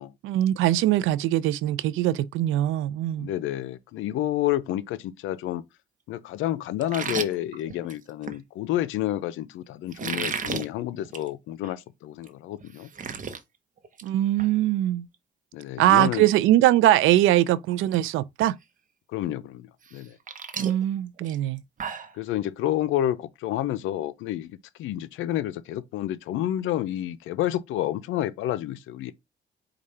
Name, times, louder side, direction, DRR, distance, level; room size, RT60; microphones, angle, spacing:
voice 1, 0.2-3.3 14.0-15.1 15.8-18.5 20.6-21.6, right 14 dB, 90° right, 0.4 m, -22 dB
voice 2, 3.2-5.6 6.1-12.9 15.5-16.3 19.1-20.2 22.1-29.1, left 13 dB, 90° left, 0.5 m, -29 dB
sound 1, 6.8-8.4 9.9-10.7 11.0-11.3 11.6-11.7 12.2-12.3 12.6-13.4 13.8-14.1 14.4-14.5 16.4-16.5 16.9-17.2 17.5-18.0 18.4-18.5 19.8-22.1, right 6 dB, 40° right, 0.8 m, -34 dB
4.9 x 2.4 x 4.2 m
cardioid pair, 90°, 20 cm